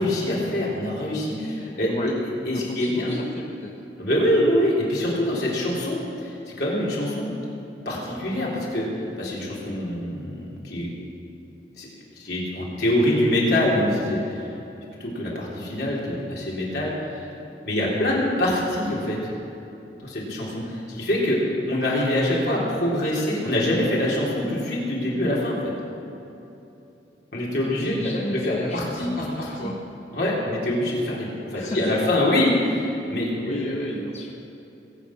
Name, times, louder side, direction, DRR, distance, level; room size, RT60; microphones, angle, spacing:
voice 1, 0.0-2.1 2.5-3.2 4.0-7.3 7.9-11.0 11.8-11.9 12.2-14.5 15.0-17.3 17.7-19.2 20.0-21.4 21.7-25.7 27.3-29.7 30.1-33.7, left 1 dB, 65° left, -5 dB, 3.9 m, -25 dB
voice 2, 2.5-3.7 17.8-18.3 27.6-29.8 31.5-32.4 33.4-34.3, left 1 dB, 35° left, 0 dB, 0.9 m, -34 dB
21.0 x 8.8 x 6.0 m, 2.9 s
head